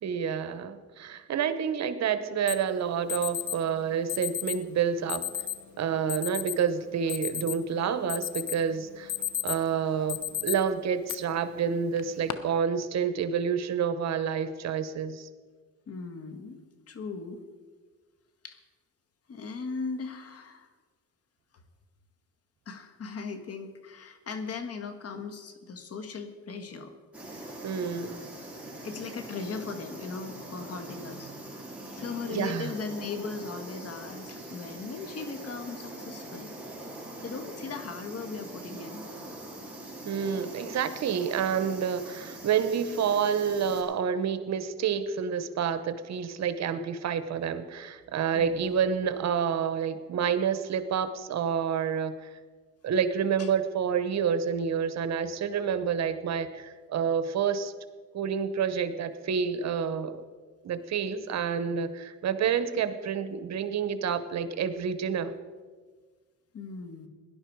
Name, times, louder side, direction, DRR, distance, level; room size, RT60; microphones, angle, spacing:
voice 1, 0.0-5.2 5.8-9.1 9.4-15.3 27.6-28.2 32.3-32.7 40.0-52.3 52.8-57.7 58.1-60.2 60.6-65.3, right 7 dB, 60° right, 11 dB, 1.0 m, -29 dB
Alarm, 2.5-2.6 3.1-3.6 4.1-4.6 5.1-5.6 6.1-6.6 6.9-7.7 8.1-8.6 8.9-9.7 10.1-10.5 11.1-11.2 12.0-12.3, left 11 dB, 70° left, 1.0 m, -32 dB
voice 2, 15.9-16.6 16.9-17.4 18.4-18.6 19.3-20.7 22.6-26.9 27.3-27.6 28.8-31.3 31.9-36.5 37.2-39.0 48.3-48.8 53.4-53.5 66.5-67.1, left 4 dB, 55° left, 8 dB, 1.6 m, -38 dB
sound 1, 27.1-43.8, right 1 dB, 5° right, 4.3 m, -43 dB
17.5 x 11.0 x 4.7 m, 1.5 s
cardioid pair, 90°, 30 cm